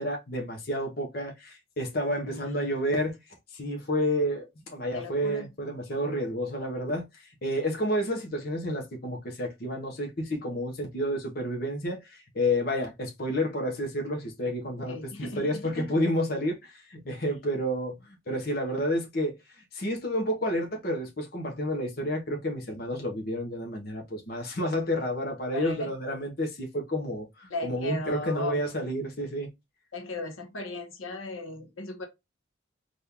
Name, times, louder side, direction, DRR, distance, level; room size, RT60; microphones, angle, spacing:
voice 1, 0.0-3.2 3.5-19.3 19.7-29.5, equal, 45° left, 0.8 m, -30 dB
voice 2, 2.2-2.8 4.9-5.5 14.8-15.9 25.5-25.9 27.5-28.6 29.9-32.1, left 2 dB, 80° left, 0.9 m, -37 dB
3.6 x 2.5 x 2.8 m
head